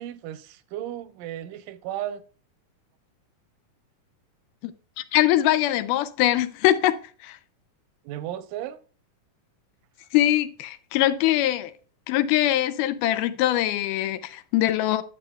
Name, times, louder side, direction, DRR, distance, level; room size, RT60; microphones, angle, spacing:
voice 1, 0.0-2.2 8.0-8.8, right 12 dB, 85° right, 2.2 m, -34 dB
voice 2, 5.0-6.9 7.2-7.4 10.1-11.7 12.1-15.0, left 13 dB, 90° left, 2.2 m, -22 dB
9.8 x 7.7 x 2.2 m
omnidirectional pair, 3.6 m